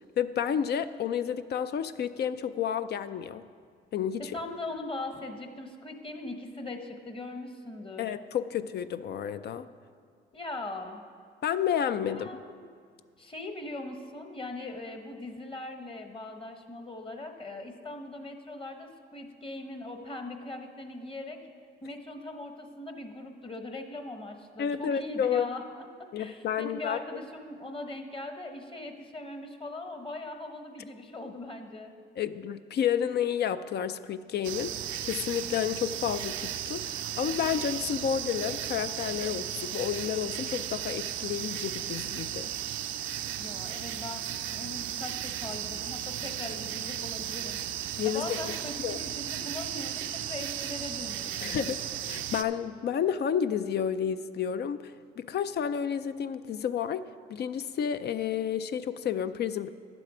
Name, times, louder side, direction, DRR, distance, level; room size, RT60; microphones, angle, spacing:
voice 1, 0.2-3.4 3.9-4.4 8.0-9.7 11.4-12.3 24.6-25.4 26.1-27.0 32.2-42.5 48.0-48.6 48.8-49.0 51.4-51.8 52.1-57.0 57.3-59.7, left 8 dB, 55° left, 12 dB, 0.4 m, -30 dB
voice 2, 4.3-8.1 10.3-11.0 12.1-12.6 13.2-21.4 21.8-25.8 26.2-31.9 43.4-44.2 44.5-47.7 48.0-51.6, left 2 dB, 25° left, 5 dB, 1.1 m, -40 dB
sound 1, 34.4-52.4, right 11 dB, 80° right, 0.5 m, -35 dB
10.5 x 7.7 x 4.9 m, 2.1 s
cardioid pair, 90°, 20 cm